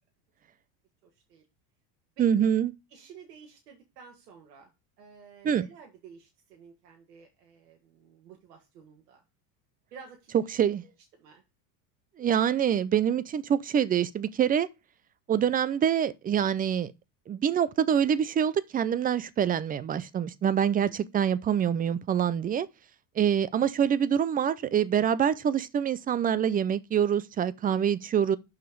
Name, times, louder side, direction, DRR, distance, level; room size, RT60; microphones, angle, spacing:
voice 1, 1.0-1.5 2.2-2.5 2.9-4.7 5.0-9.2 9.9-10.5 10.8-10.9 11.2-11.4 28.1-28.3, right 6 dB, 85° right, 2.0 m, -52 dB
voice 2, 2.2-2.7 5.4-5.7 10.5-10.8 12.2-14.7 15.3-16.9 17.3-22.7 23.2-28.4, right 8 dB, 20° right, 0.4 m, -25 dB
6.1 x 5.0 x 5.2 m
supercardioid pair, 105°, 47 cm